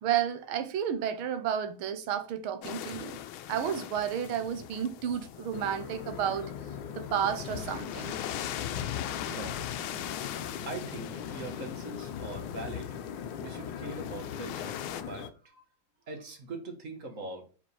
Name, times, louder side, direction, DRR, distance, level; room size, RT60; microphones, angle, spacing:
voice 1, 0.0-3.2 3.5-6.5 6.9-8.1, right 9 dB, 85° right, 1.8 m, -31 dB
sound 1, 2.6-15.0, left 11 dB, 90° left, 1.5 m, -41 dB
sound 2, 5.5-15.3, left 8 dB, 70° left, 1.3 m, -39 dB
voice 2, 9.3-10.1 10.5-12.9 13.4-15.6 16.1-17.5, right 3 dB, 40° right, 1.7 m, -42 dB
5.1 x 5.1 x 5.5 m
omnidirectional pair, 2.2 m